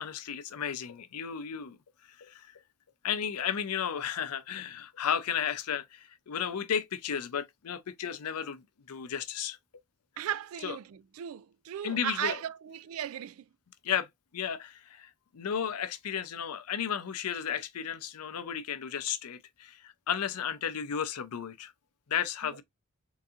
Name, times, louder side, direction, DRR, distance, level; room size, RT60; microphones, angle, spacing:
voice 1, 0.0-1.8 2.2-2.5 3.0-9.6 10.6-10.8 11.8-12.4 13.8-14.1 14.3-21.7 22.1-22.6, left 8 dB, 85° left, 0.5 m, -34 dB
voice 2, 10.2-13.5 22.4-22.6, right 10 dB, 65° right, 0.3 m, -36 dB
3.9 x 2.7 x 2.3 m
head